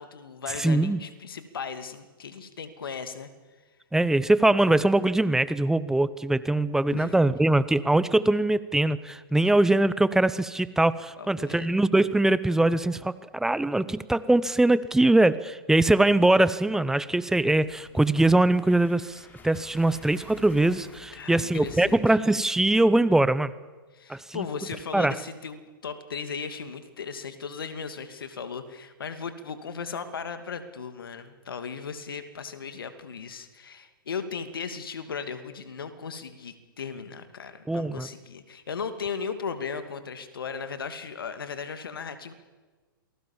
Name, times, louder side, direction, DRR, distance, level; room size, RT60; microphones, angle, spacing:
voice 1, 0.0-3.3 6.9-7.2 11.2-11.7 21.1-22.2 23.9-42.3, left 6 dB, 75° left, 9 dB, 2.6 m, -37 dB
voice 2, 0.6-1.0 3.9-23.5 24.1-24.4 24.9-25.1 37.7-38.1, right 2 dB, 5° right, 16 dB, 0.8 m, -22 dB
sound 1, 17.3-22.4, left 3 dB, 15° left, 5.0 m, -51 dB
28.0 x 19.5 x 7.4 m, 1.3 s
hypercardioid pair, 120°, 12 cm